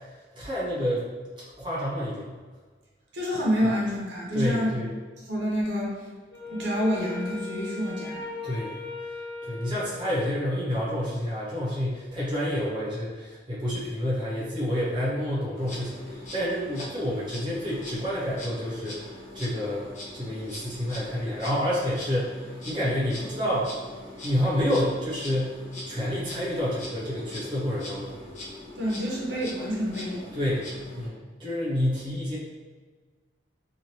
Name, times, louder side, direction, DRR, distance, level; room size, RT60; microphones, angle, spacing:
voice 1, 0.3-1.1 1.6-2.4 3.6-3.7 4.3-4.9 8.4-8.7 9.4-23.7 24.2-25.6 25.8-28.2 30.3-30.7 30.9-32.4, equal, 25° right, -7 dB, 0.7 m, -29 dB
voice 2, 3.1-4.7 5.3-6.0 6.4-8.2 28.8-30.3, equal, 70° right, -4 dB, 0.8 m, -28 dB
Wind instrument woodwind instrument, 6.3-10.7, left 3 dB, 90° left, 0.8 m, -39 dB
Insect, 15.5-31.1, left 1 dB, 40° left, 0.7 m, -42 dB
3.0 x 2.4 x 2.8 m, 1.4 s
head